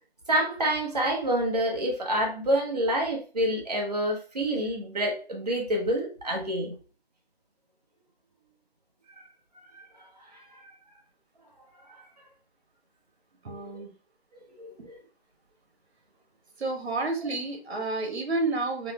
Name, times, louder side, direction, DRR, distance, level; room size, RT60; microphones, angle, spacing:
voice 1, 0.3-6.7 10.3-10.7 11.9-12.0 13.5-13.6 14.6-14.7, right 1 dB, 40° right, 0 dB, 0.7 m, -27 dB
voice 2, 13.4-13.9 16.6-18.9, right 3 dB, 85° right, 3 dB, 1.0 m, -30 dB
3.1 x 2.0 x 3.1 m, 0.37 s
hypercardioid pair, 175°, 32 cm